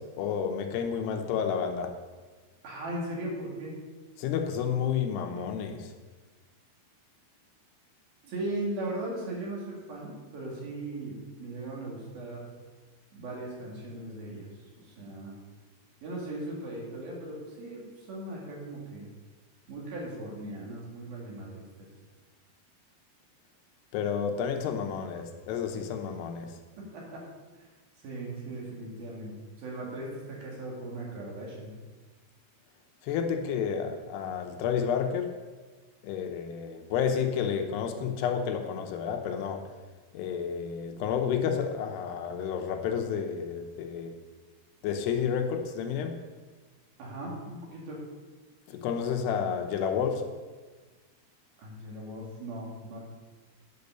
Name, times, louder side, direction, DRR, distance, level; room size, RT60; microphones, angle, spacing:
voice 1, 0.0-2.0 4.2-5.9 23.9-26.6 33.0-35.3 36.0-39.7 40.1-44.1 44.8-46.2 48.7-50.3, left 7 dB, 90° left, 3.0 m, -30 dB
voice 2, 2.6-3.7 8.2-12.4 13.1-14.5 14.8-15.4 16.0-19.1 19.7-21.6 26.9-27.2 27.6-27.7 28.0-31.7 47.0-48.1 51.6-53.0, right 1 dB, 65° right, 4.1 m, -38 dB
9.1 x 6.8 x 6.8 m
omnidirectional pair, 4.7 m